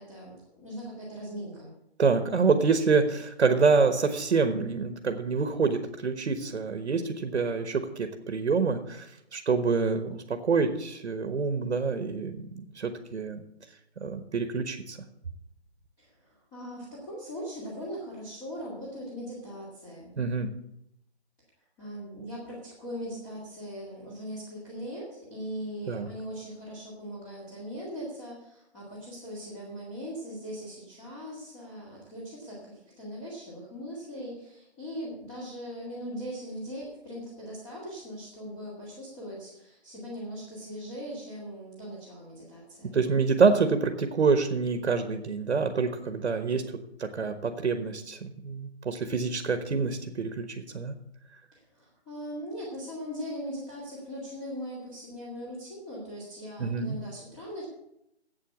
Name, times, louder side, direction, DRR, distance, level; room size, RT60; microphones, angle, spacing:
voice 1, 0.0-1.7 16.0-20.1 21.8-43.0 51.5-57.7, equal, 15° left, -7 dB, 2.1 m, -40 dB
voice 2, 2.0-9.1 9.3-13.4 14.0-15.0 20.2-20.5 25.9-26.1 42.9-46.6 47.0-50.9 56.6-57.0, right 4 dB, 80° right, 7 dB, 1.3 m, -26 dB
8.3 x 8.0 x 8.2 m, 0.82 s
hypercardioid pair, 170°, 34 cm